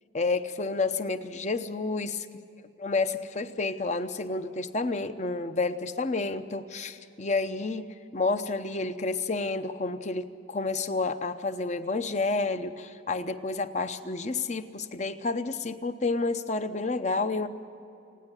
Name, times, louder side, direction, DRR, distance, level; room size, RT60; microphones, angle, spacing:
voice 1, 0.1-2.3 2.8-7.8 8.1-17.5, left 3 dB, 35° left, 10 dB, 0.8 m, -30 dB
29.5 x 9.8 x 10.0 m, 2.9 s
head